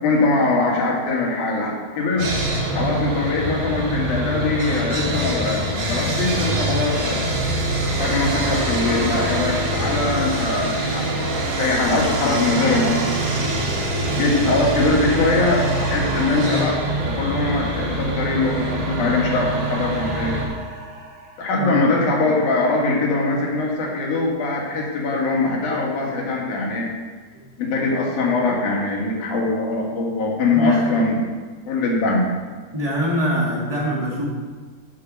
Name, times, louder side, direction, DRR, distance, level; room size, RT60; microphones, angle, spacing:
voice 1, 0.0-2.3 2.7-7.3 8.0-13.2 14.1-16.8 17.0-20.4 21.4-26.9 27.6-31.2 31.7-32.2, left 3 dB, 55° left, -2 dB, 2.9 m, -22 dB
Sawing, 2.2-20.5, right 1 dB, 55° right, 3.3 m, -24 dB
sound 1, 7.8-18.0 18.3-21.8, right 3 dB, 85° right, 4.4 m, -35 dB
voice 2, 30.5-30.9 32.7-34.2, equal, 15° right, -6 dB, 1.1 m, -24 dB
11.0 x 4.8 x 7.0 m, 1.5 s
omnidirectional pair, 4.6 m